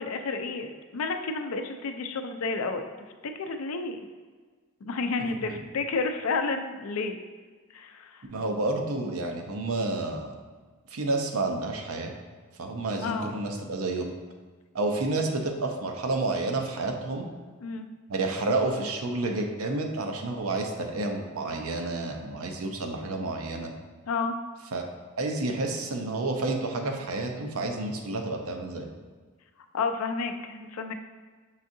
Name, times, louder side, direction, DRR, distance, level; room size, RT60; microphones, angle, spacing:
voice 1, 0.0-2.8 3.4-4.1 4.8-7.2 7.7-8.2 13.0-13.3 17.6-17.9 24.1-24.4 29.7-30.9, left 4 dB, 75° left, 6 dB, 0.4 m, -31 dB
voice 2, 8.3-10.3 10.9-12.1 12.6-14.1 14.7-17.3 18.1-23.7 24.7-24.8 25.2-28.9, right 2 dB, 85° right, 3 dB, 0.6 m, -30 dB
5.6 x 3.6 x 2.6 m, 1.4 s
head